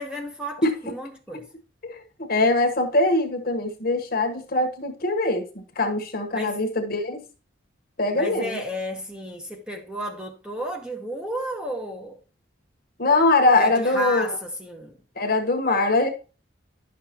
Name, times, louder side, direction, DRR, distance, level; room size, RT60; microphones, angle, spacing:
voice 1, 0.0-1.4 6.3-6.6 8.1-12.2 13.6-15.0, equal, 5° right, 1.0 m, -32 dB
voice 2, 1.8-7.2 8.0-8.6 13.0-14.4 15.2-16.1, left 2 dB, 50° left, 1.3 m, -22 dB
11.0 x 6.5 x 3.0 m
head